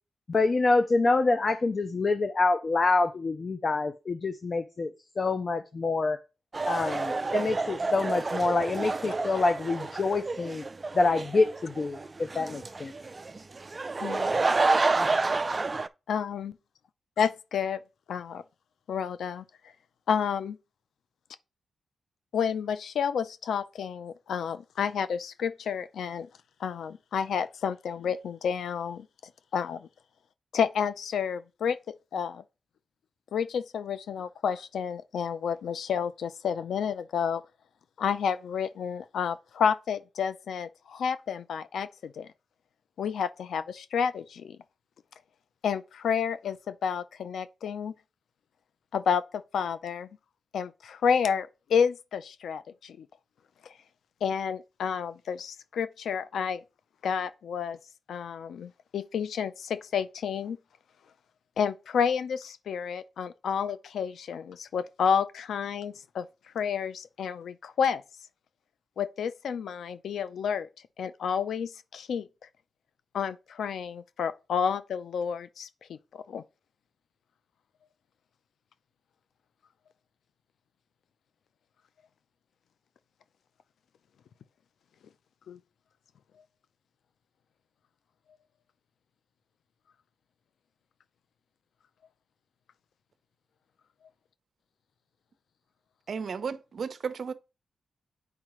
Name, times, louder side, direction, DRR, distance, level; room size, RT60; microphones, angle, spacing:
voice 1, 0.3-6.2 6.7-10.6 10.9-12.9, left 3 dB, 40° left, 0.6 m, -26 dB
sound 1, 6.5-15.9, right 3 dB, 30° right, 0.4 m, -29 dB
voice 2, 14.0-14.3 16.1-16.5 17.2-17.8 18.1-18.4 18.9-19.4 20.1-20.6 22.3-26.3 26.6-29.1 29.5-29.9 30.5-31.8 32.1-32.4 33.3-37.4 38.0-42.3 43.0-44.6 45.6-47.9 48.9-50.1 50.5-53.1 54.2-56.6 57.0-57.8 58.1-60.6 61.6-66.3 66.5-68.0 69.0-70.7 71.0-72.3 73.1-76.4 85.5-85.6, left 7 dB, 85° left, 0.5 m, -30 dB
voice 3, 96.1-97.3, right 6 dB, 55° right, 0.7 m, -34 dB
9.0 x 4.7 x 3.1 m
cardioid pair, 100°, 0 cm